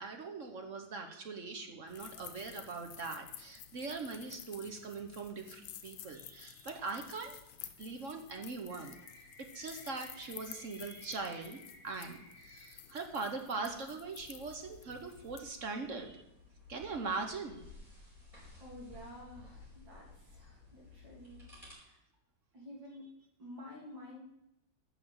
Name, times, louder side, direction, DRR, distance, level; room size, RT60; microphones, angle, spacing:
voice 1, 0.0-7.4 7.8-11.6 11.8-16.2 16.7-17.6, right 4 dB, 50° right, 5 dB, 1.1 m, -41 dB
sound 1, 1.9-15.4, left 10 dB, 85° left, 1.5 m, -52 dB
sound 2, 8.7-12.7, left 2 dB, 55° left, 2.9 m, -57 dB
sound 3, 14.1-21.7, left 3 dB, 15° right, 4.8 m, -56 dB
voice 2, 18.6-22.0 22.5-23.1 23.4-24.2, left 1 dB, 65° right, -3 dB, 3.9 m, -51 dB
9.4 x 6.2 x 8.0 m, 0.83 s
omnidirectional pair, 2.1 m